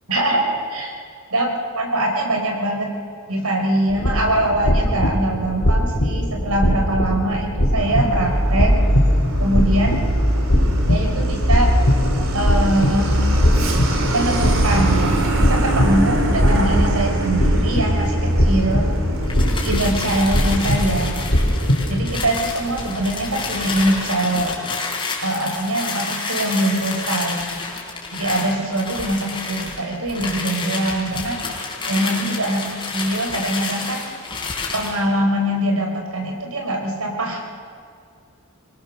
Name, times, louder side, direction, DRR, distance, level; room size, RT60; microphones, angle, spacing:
voice 1, 0.1-0.9 1.3-2.9 3.3-8.7 9.4-10.0 10.9-11.7 12.3-13.2 14.1-18.9 19.6-21.2 21.9-24.5 25.2-27.4 28.1-31.4 31.9-34.1 34.7-37.4, right 1 dB, 85° right, 2 dB, 4.4 m, -23 dB
sound 1, 3.9-22.2, equal, 75° left, 3.8 m, -21 dB
Truck, 7.8-24.0, right 1 dB, 70° right, 3.3 m, -23 dB
sound 2, 19.2-35.0, left 4 dB, 25° left, 4.1 m, -29 dB
23.5 x 20.0 x 6.7 m, 2.3 s
head